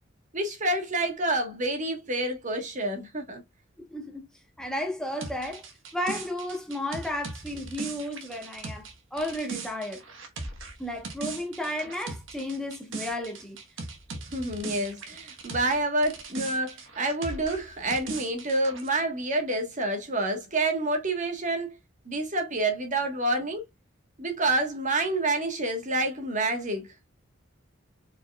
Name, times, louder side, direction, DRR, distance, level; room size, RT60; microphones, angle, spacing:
voice 1, 0.3-3.4 14.3-21.8 22.0-23.6 24.2-26.9, right 2 dB, 40° right, 1.2 m, -28 dB
voice 2, 3.9-4.2 4.6-5.7 5.9-10.0 10.8-13.6, left 1 dB, 5° left, 0.9 m, -33 dB
sound 1, 5.2-15.8 16.0-18.9, right 3 dB, 70° right, 1.1 m, -39 dB
4.7 x 4.3 x 2.2 m
head